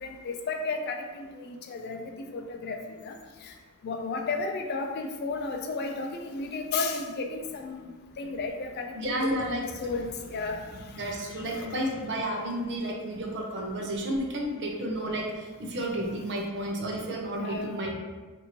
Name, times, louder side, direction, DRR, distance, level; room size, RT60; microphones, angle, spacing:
voice 1, 0.0-2.0 2.3-3.2 3.8-7.8 8.2-10.6 17.4-17.8, left 3 dB, 45° left, 4 dB, 0.3 m, -33 dB
voice 2, 8.9-9.6 10.7-17.9, right 1 dB, 50° right, 0 dB, 0.6 m, -32 dB
2.8 x 2.6 x 4.3 m, 1.3 s
head